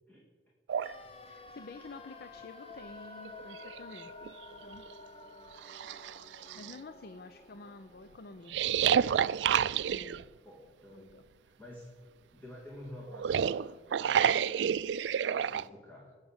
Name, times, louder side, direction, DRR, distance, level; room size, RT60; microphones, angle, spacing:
sound 1, 0.7-0.9 2.7-2.8 3.2-4.3 4.9-5.0 5.6-6.7 8.5-10.2 13.1-15.6, right 8 dB, 80° right, 0.3 m, -29 dB
sound 2, 0.8-10.7 11.0-11.1, left 3 dB, 35° left, 0.9 m, -52 dB
voice 1, 1.2-4.1 4.6-4.8 6.5-8.6 9.9-10.2 10.9-11.2, left 3 dB, 60° left, 10 dB, 0.6 m, -49 dB
voice 2, 6.7-7.0 9.8-13.8 14.1-14.7 15.3-16.2, left 1 dB, 10° left, -4 dB, 2.2 m, -51 dB
19.5 x 6.5 x 7.3 m, 1.4 s
head